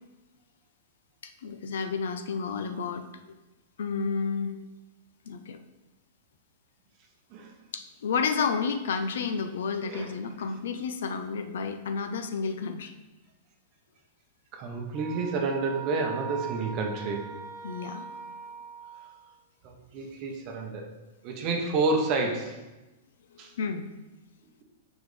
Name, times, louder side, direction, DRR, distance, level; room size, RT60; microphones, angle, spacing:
voice 1, 1.2-3.1 3.8-4.5 5.3-5.6 7.7-12.9 17.6-18.1 23.3-23.9, left 5 dB, 75° left, 8 dB, 0.6 m, -31 dB
voice 2, 14.5-17.3 19.6-20.9 21.2-22.6 23.4-23.5, right 3 dB, 25° right, 2 dB, 0.8 m, -30 dB
sound 1, 14.9-19.4, right 7 dB, 5° right, 1.1 m, -41 dB
7.2 x 5.1 x 3.2 m, 1.1 s
supercardioid pair, 175°, 0 cm